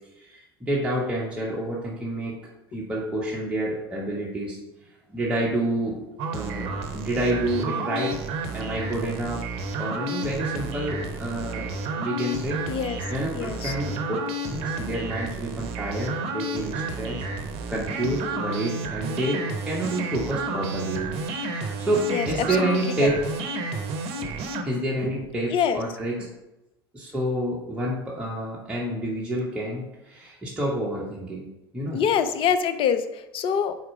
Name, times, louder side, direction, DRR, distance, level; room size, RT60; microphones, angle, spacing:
voice 1, 0.2-2.3 2.7-4.6 5.1-6.0 6.3-8.2 8.5-9.5 9.8-11.7 12.0-12.6 13.1-14.2 14.5-17.2 17.7-23.2 24.6-26.2 26.9-32.0, right 1 dB, 10° right, -5 dB, 1.4 m, -28 dB
sound 1, 6.2-24.6, right 3 dB, 55° right, 0.8 m, -31 dB
voice 2, 12.7-13.0 13.3-13.8 22.1-23.2 25.5-25.8 31.9-33.8, left 7 dB, 45° left, 10 dB, 0.6 m, -25 dB
4.7 x 4.3 x 4.8 m, 0.94 s
hypercardioid pair, 75°, 13 cm